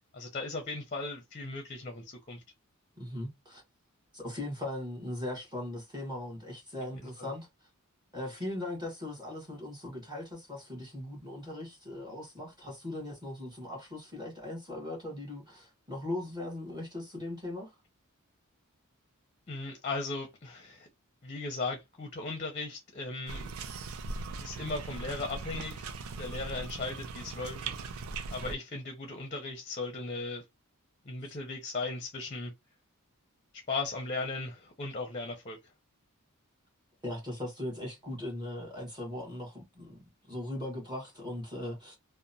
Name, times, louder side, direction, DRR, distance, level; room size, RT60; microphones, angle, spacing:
voice 1, 0.1-2.4 7.2-7.3 19.5-20.9 21.2-23.5 24.4-25.9 26.2-28.0 28.3-30.4 31.0-32.5 33.5-35.6, left 3 dB, 30° left, 0.6 m, -37 dB
voice 2, 3.0-3.6 4.1-7.7 8.1-17.8 37.0-40.0 40.3-42.0, left 1 dB, 20° right, 1.1 m, -39 dB
sound 1, 23.3-28.5, right 4 dB, 70° right, 0.4 m, -39 dB
2.9 x 2.0 x 2.6 m
head